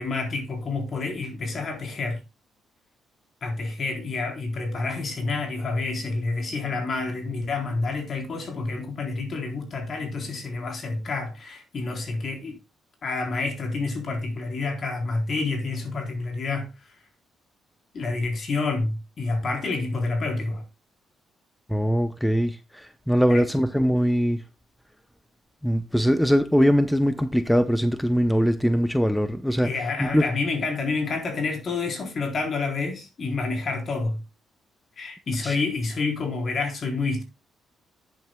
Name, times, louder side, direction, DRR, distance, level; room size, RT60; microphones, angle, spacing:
voice 1, 0.0-2.2 3.4-12.6 13.0-16.7 17.9-20.6 23.3-23.5 29.5-34.2 35.0-37.2, left 3 dB, 50° left, 3.9 m, -28 dB
voice 2, 21.7-24.4 25.6-29.7 30.0-30.2 35.4-35.6, equal, ahead, 0.8 m, -22 dB
10.5 x 8.9 x 2.3 m
cardioid pair, 90°, 0 cm